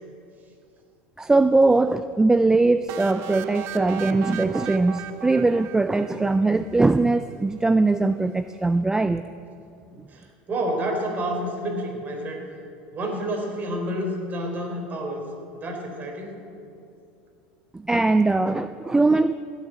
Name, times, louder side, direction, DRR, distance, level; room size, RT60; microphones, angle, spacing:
voice 1, 1.2-9.3 17.7-19.3, right 3 dB, 10° right, 11 dB, 0.4 m, -21 dB
sound 1, 2.9-6.7, right 10 dB, 60° right, 0.8 m, -36 dB
voice 2, 10.1-12.5 12.9-15.2 15.5-16.3, right 1 dB, 35° right, 2 dB, 3.7 m, -29 dB
16.5 x 7.3 x 9.0 m, 2.6 s
supercardioid pair, 100°, 5 cm